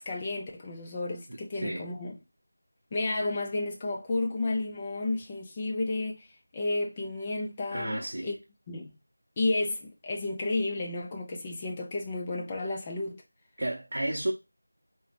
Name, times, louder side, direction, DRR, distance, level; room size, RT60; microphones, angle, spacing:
voice 1, 0.0-2.2 2.9-6.3 6.5-8.3 8.7-8.9 9.4-13.2, left 2 dB, 10° left, 0.4 m, -32 dB
voice 2, 1.3-1.9 7.7-8.3 13.6-14.3, right 1 dB, 45° right, 0.8 m, -32 dB
4.8 x 2.2 x 4.2 m
figure-of-eight pair, 180°, 0 cm